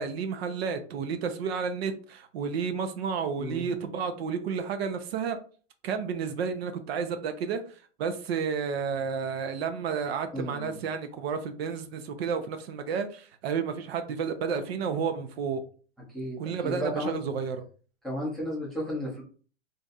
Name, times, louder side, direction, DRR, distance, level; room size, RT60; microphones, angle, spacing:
voice 1, 0.0-5.4 5.8-15.6 16.4-17.6, right 6 dB, 60° right, 0.6 m, -31 dB
voice 2, 10.3-10.8 16.1-17.2 18.0-19.2, equal, ahead, 0.6 m, -33 dB
2.5 x 2.3 x 4.0 m
supercardioid pair, 165°, 36 cm